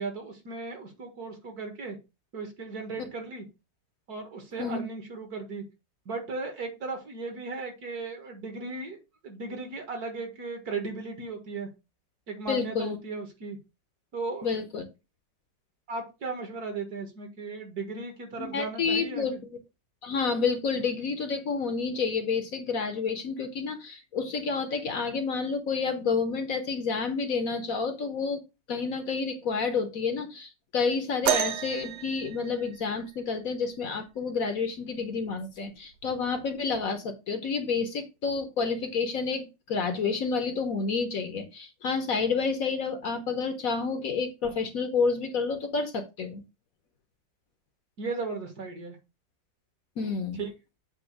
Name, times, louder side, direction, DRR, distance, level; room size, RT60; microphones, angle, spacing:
voice 1, 0.0-2.0 2.3-3.4 4.1-5.6 6.1-9.0 9.2-11.7 12.3-13.6 14.1-14.5 15.9-19.3 48.0-49.0 50.3-50.5, right 3 dB, 60° right, 4 dB, 2.1 m, -36 dB
voice 2, 12.5-13.0 14.4-14.8 18.4-19.3 20.0-28.4 28.7-46.4 50.0-50.4, left 5 dB, 55° left, 6 dB, 1.2 m, -29 dB
sound 1, 31.3-33.2 34.8-34.9 35.7-35.9 36.9-37.0, right 11 dB, 75° right, 1.2 m, -30 dB
7.9 x 2.9 x 5.7 m, 0.26 s
omnidirectional pair, 1.9 m